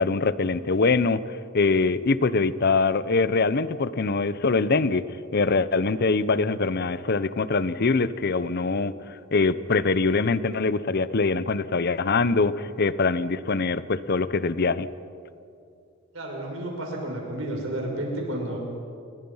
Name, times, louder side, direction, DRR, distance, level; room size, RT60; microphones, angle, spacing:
voice 1, 0.0-5.1 5.3-8.9 9.3-14.9, left 4 dB, 55° left, 15 dB, 0.7 m, -23 dB
voice 2, 16.1-18.6, right 1 dB, 80° right, 0 dB, 6.2 m, -31 dB
28.0 x 22.0 x 5.6 m, 2.5 s
head